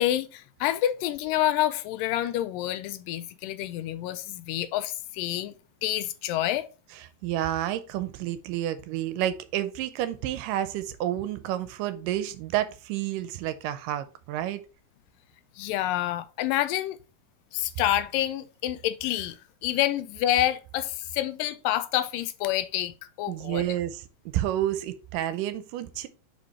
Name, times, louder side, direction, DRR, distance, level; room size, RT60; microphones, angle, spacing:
voice 1, 0.0-5.5 5.8-6.7 15.6-17.0 17.5-23.6, left 13 dB, 85° left, 2.2 m, -28 dB
voice 2, 7.2-14.6 23.3-24.0 24.3-26.1, right 12 dB, 85° right, 2.1 m, -30 dB
5.3 x 5.0 x 4.1 m
omnidirectional pair, 3.9 m